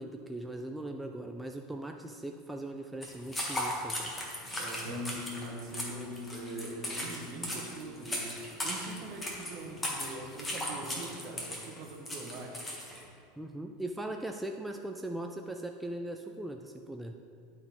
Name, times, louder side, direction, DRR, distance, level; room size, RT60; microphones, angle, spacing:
voice 1, 0.0-4.1 13.4-17.1, right 1 dB, 5° right, 3 dB, 0.3 m, -39 dB
sound 1, 3.0-13.0, left 1 dB, 10° left, 1.3 m, -37 dB
voice 2, 4.5-8.4 8.6-12.6, right 3 dB, 45° right, 1 dB, 1.2 m, -43 dB
sound 2, 4.8-8.0, left 5 dB, 85° left, 1.4 m, -44 dB
11.0 x 3.9 x 4.4 m, 2.4 s
supercardioid pair, 140°, 0 cm